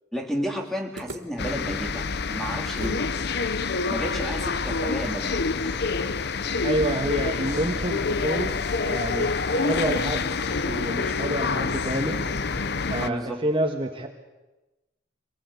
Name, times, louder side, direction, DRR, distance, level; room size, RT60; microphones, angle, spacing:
voice 1, 0.1-3.1 3.9-5.4 13.0-13.4, equal, ahead, 2 dB, 2.7 m, -32 dB
sound 1, 0.9-3.1 3.4-3.5 4.0-7.2, right 1 dB, 75° right, 2.4 m, -44 dB
sound 2, 1.4-13.1, left 4 dB, 60° left, 0.8 m, -27 dB
voice 2, 6.6-8.6 8.8-10.3 10.7-12.2 12.9-14.1, right 1 dB, 30° right, 3 dB, 1.6 m, -28 dB
25.0 x 19.0 x 8.4 m, 1.1 s
head